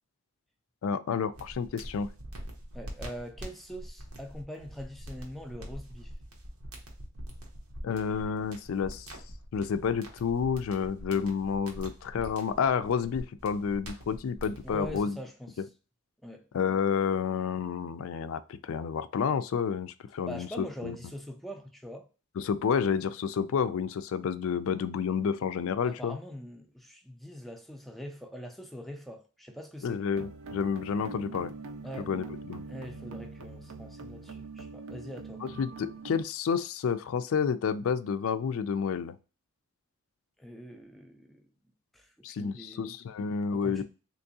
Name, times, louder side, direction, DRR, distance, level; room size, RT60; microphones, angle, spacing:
voice 1, 0.8-2.1 7.8-9.1 9.5-15.2 16.5-21.0 22.4-26.2 29.8-31.5 32.1-32.6 35.4-39.1 42.2-43.8, left 6 dB, 65° left, 0.3 m, -30 dB
sound 1, 1.3-15.0, equal, 85° right, 1.0 m, -44 dB
voice 2, 2.7-6.1 14.6-15.7 16.2-16.5 20.2-22.1 25.8-30.0 31.8-32.1 32.7-35.5 40.4-41.4 41.9-42.9 43.5-43.8, equal, ahead, 0.4 m, -43 dB
sound 2, 30.1-36.2, right 3 dB, 65° right, 0.4 m, -43 dB
3.5 x 2.9 x 2.7 m
head